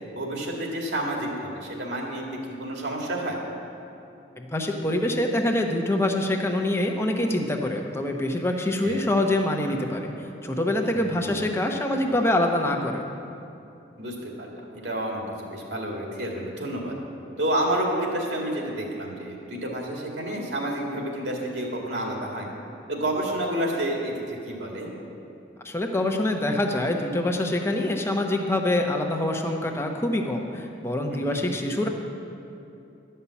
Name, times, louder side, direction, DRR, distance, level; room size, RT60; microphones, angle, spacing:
voice 1, 0.1-3.4 8.8-9.0 10.9-11.4 14.0-16.9 17.4-22.5 22.9-24.9 31.1-31.4, right 1 dB, 75° right, -1 dB, 2.2 m, -30 dB
voice 2, 4.4-13.1 25.6-31.9, left 1 dB, 15° left, 2 dB, 0.8 m, -25 dB
12.0 x 5.6 x 8.3 m, 2.7 s
head